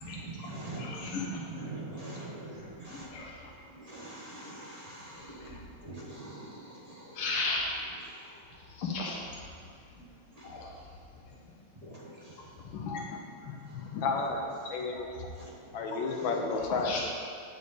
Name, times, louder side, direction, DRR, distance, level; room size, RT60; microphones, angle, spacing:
voice 1, 0.0-3.1 3.7-7.3 8.1-8.3 10.4-10.5 11.8-12.4 15.4-15.5 15.9-16.3, right 2 dB, 25° right, -5 dB, 1.0 m, -44 dB
voice 2, 0.8-1.2 3.1-3.3 7.2-7.6 8.8-9.2 10.5-10.7 14.9-15.0 16.8-17.0, left 3 dB, 90° left, -3 dB, 2.0 m, -33 dB
voice 3, 12.6-15.1 15.7-16.9, left 4 dB, 70° left, 2 dB, 1.5 m, -33 dB
8.6 x 6.8 x 4.1 m, 2.3 s
omnidirectional pair, 2.3 m